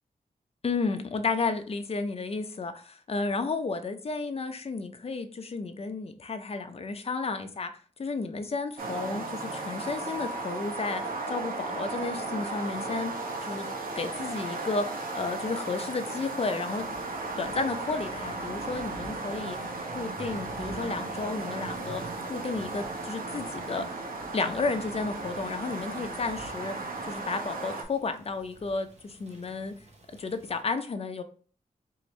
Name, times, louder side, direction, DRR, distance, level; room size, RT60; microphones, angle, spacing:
voice 1, 0.6-7.7 8.0-13.1 13.4-13.7 14.0-16.9 17.4-24.1 24.3-26.7 27.1-29.7 30.2-31.2, left 4 dB, 45° left, 7 dB, 0.6 m, -32 dB
sound 1, 8.8-27.8, right 3 dB, 90° right, 0.9 m, -35 dB
Thunder / Rain, 16.7-30.6, right 2 dB, 50° right, 0.9 m, -49 dB
4.7 x 2.6 x 3.1 m, 0.40 s
wide cardioid pair, 95°, 14 cm